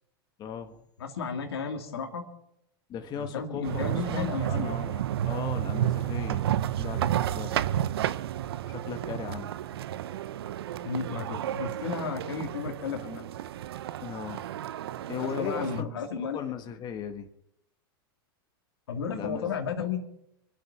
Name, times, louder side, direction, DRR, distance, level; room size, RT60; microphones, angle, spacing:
voice 1, 0.4-0.8 2.9-6.4 6.8-7.6 8.7-9.6 14.0-14.5 15.1-15.9 16.3-17.3 19.1-19.5, left 7 dB, 35° left, 5 dB, 1.6 m, -37 dB
voice 2, 1.0-2.3 3.1-4.8 10.8-13.3 15.2-16.6 18.9-20.0, left 6 dB, 90° left, 3 dB, 2.7 m, -33 dB
sound 1, 3.6-15.8, right 11 dB, 80° right, 0.7 m, -31 dB
25.0 x 8.5 x 5.9 m, 0.77 s
hypercardioid pair, 115°, 13 cm